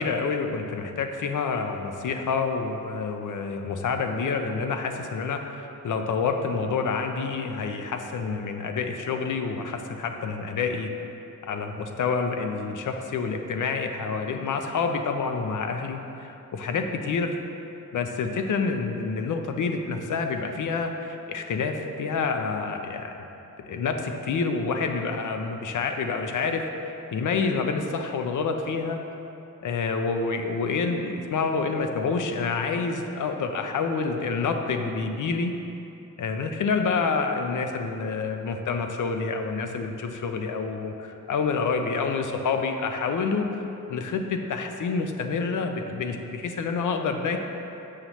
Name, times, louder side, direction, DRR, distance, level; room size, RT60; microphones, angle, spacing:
voice 1, 0.0-10.9 11.5-17.3 17.9-23.2 23.6-29.0 29.6-35.5 36.2-47.4, left 4 dB, 65° left, 5 dB, 0.6 m, -28 dB
6.5 x 5.7 x 3.0 m, 2.9 s
wide cardioid pair, 110°, 33 cm